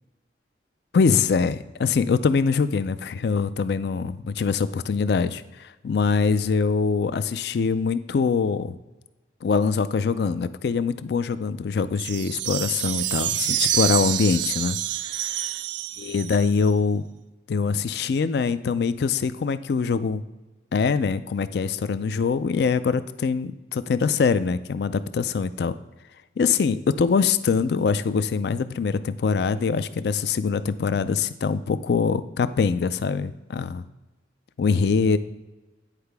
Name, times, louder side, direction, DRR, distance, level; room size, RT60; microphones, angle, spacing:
voice 1, 0.9-8.8 9.4-14.8 16.0-17.0 17.5-20.2 20.7-25.7 26.4-33.9 34.6-35.2, left 5 dB, 60° left, 14 dB, 0.4 m, -23 dB
sound 1, 12.0-16.7, right 12 dB, 75° right, 0.4 m, -27 dB
9.8 x 4.7 x 3.4 m, 1.1 s
head